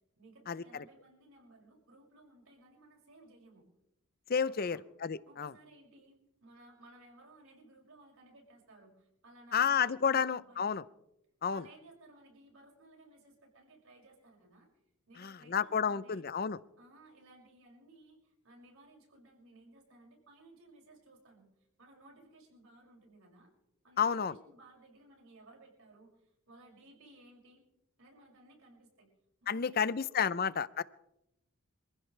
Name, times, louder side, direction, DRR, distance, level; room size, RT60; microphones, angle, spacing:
voice 1, 0.2-3.6 4.5-4.9 5.3-10.8 11.5-14.7 15.1-16.2 16.8-21.5 21.8-23.5 23.8-27.6 28.0-29.1 29.4-30.4, right 2 dB, 65° right, -1 dB, 6.4 m, -59 dB
voice 2, 4.3-5.5 9.5-10.8 11.4-11.6 15.2-16.6 24.0-24.4 29.5-30.8, left 7 dB, 45° left, 17 dB, 0.6 m, -31 dB
26.5 x 15.5 x 3.3 m, 0.85 s
head